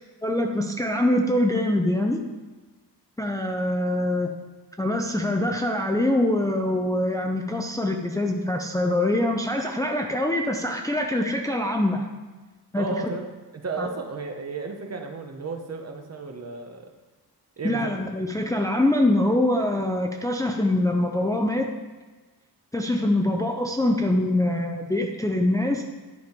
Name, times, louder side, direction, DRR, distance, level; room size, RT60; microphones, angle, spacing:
voice 1, 0.2-2.2 3.2-4.3 4.8-12.1 12.7-12.9 13.8-13.9 17.6-21.7 22.7-25.8, left 1 dB, 10° left, 2 dB, 0.5 m, -24 dB
voice 2, 12.8-13.2 13.5-16.9 17.6-17.9, right 4 dB, 40° right, 4 dB, 1.0 m, -33 dB
10.5 x 5.1 x 5.2 m, 1.3 s
wide cardioid pair, 165°, 39 cm